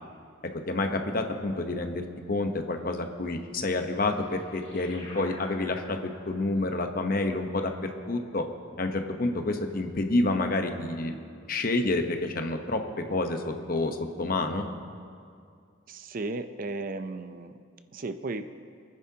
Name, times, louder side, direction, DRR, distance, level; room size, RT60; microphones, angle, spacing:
voice 1, 0.5-8.5 8.8-11.2 11.5-14.6, left 2 dB, 50° left, 5 dB, 0.9 m, -29 dB
sound 1, 3.8-8.7, left 2 dB, 35° left, 3.6 m, -50 dB
voice 2, 15.9-17.6 17.9-18.5, right 3 dB, 45° right, 9 dB, 0.5 m, -35 dB
28.5 x 9.9 x 2.8 m, 2.3 s
head